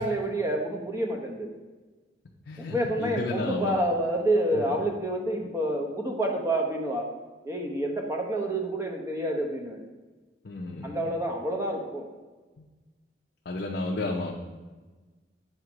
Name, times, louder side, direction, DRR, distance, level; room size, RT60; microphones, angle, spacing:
voice 1, 0.0-1.5 2.6-7.1 7.4-9.8 10.8-12.1, right 1 dB, 15° right, 1 dB, 0.8 m, -28 dB
voice 2, 2.5-3.7 4.5-4.8 10.4-11.1 13.5-14.3, left 2 dB, 60° left, 0 dB, 0.6 m, -32 dB
7.6 x 2.8 x 6.0 m, 1.3 s
head